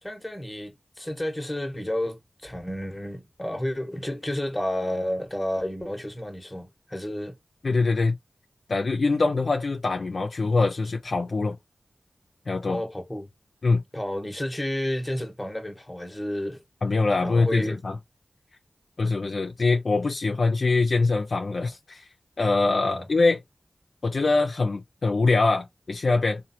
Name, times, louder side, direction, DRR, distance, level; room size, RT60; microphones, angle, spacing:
voice 1, 0.0-7.4 12.7-13.3 13.9-16.6 17.2-17.8 22.8-23.1, left 1 dB, 20° left, 0.9 m, -31 dB
voice 2, 7.6-8.2 8.7-11.6 12.5-12.8 13.6-13.8 16.8-18.0 19.0-22.1 22.4-23.4 24.0-26.4, left 3 dB, 75° left, 0.4 m, -23 dB
3.1 x 2.1 x 2.7 m
cardioid pair, 45°, 0 cm